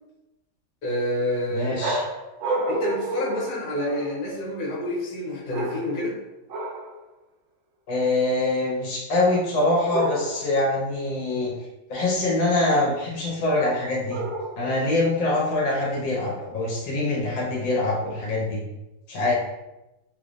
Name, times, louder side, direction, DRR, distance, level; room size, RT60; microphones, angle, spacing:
voice 1, 0.8-2.0 2.7-6.2, left 1 dB, 60° left, -5 dB, 1.6 m, -28 dB
voice 2, 1.5-2.0 7.9-11.5 11.9-14.2 14.6-18.6 19.1-19.3, left 2 dB, 80° left, -4 dB, 1.6 m, -24 dB
sound 1, 1.8-4.3 5.5-6.1 6.5-7.0 9.9-10.6 14.1-14.8, right 1 dB, 80° right, 1.2 m, -30 dB
3.9 x 3.1 x 2.5 m, 0.96 s
omnidirectional pair, 2.0 m